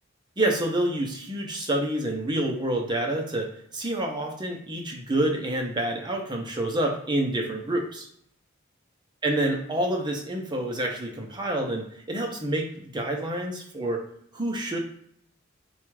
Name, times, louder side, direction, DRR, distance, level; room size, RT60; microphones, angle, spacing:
voice 1, 0.4-8.1 9.2-14.0 14.3-14.8, right 1 dB, 20° right, 1 dB, 0.7 m, -28 dB
4.5 x 2.4 x 4.6 m, 0.69 s
head